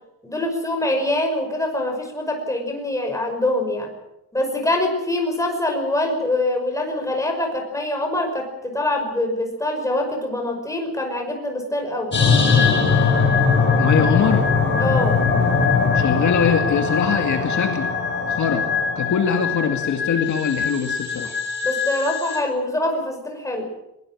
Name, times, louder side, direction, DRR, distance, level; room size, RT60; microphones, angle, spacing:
voice 1, 0.2-3.9 4.3-12.1 14.8-15.2 21.6-23.7, left 1 dB, 10° left, 2 dB, 5.6 m, -24 dB
sound 1, 12.1-22.4, left 5 dB, 25° left, 6.9 m, -21 dB
voice 2, 13.8-14.5 15.9-17.9 18.3-18.7 18.9-21.4, left 7 dB, 45° left, 4 dB, 2.3 m, -22 dB
22.0 x 21.5 x 7.5 m, 0.87 s
cardioid pair, 165°, 41 cm